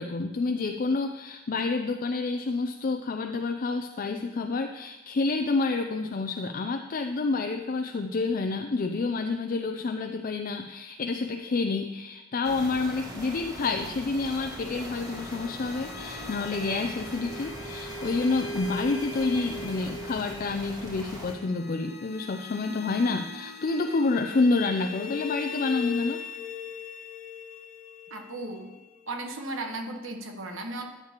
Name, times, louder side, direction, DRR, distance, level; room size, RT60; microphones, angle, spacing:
voice 1, 0.0-26.2, left 3 dB, 40° left, 6 dB, 0.4 m, -28 dB
sound 1, 12.4-21.3, equal, 15° right, 1.4 m, -41 dB
sound 2, 14.3-29.2, left 3 dB, 60° left, 1.5 m, -40 dB
voice 2, 28.1-28.7 29.1-30.8, right 2 dB, 65° right, 3 dB, 1.3 m, -35 dB
13.5 x 8.8 x 3.0 m, 1.1 s
head